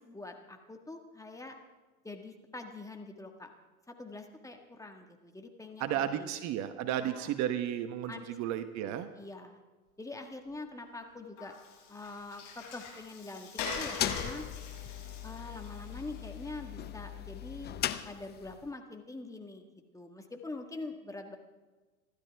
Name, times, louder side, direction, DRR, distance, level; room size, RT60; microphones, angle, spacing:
voice 1, 0.0-1.5 2.0-3.5 3.9-6.3 7.0-7.3 8.1-8.4 8.8-9.6 10.0-11.5 11.9-14.4 15.2-17.7 18.0-19.6 19.9-21.4, left 2 dB, 5° left, 4 dB, 1.6 m, -44 dB
voice 2, 5.8-9.1, right 11 dB, 40° right, 10 dB, 1.1 m, -33 dB
Water, 11.4-16.7, left 5 dB, 45° left, 6.7 m, -42 dB
sound 1, 13.6-18.7, left 11 dB, 25° left, 0.7 m, -39 dB
27.0 x 12.5 x 3.5 m, 1.3 s
hypercardioid pair, 100°, 42 cm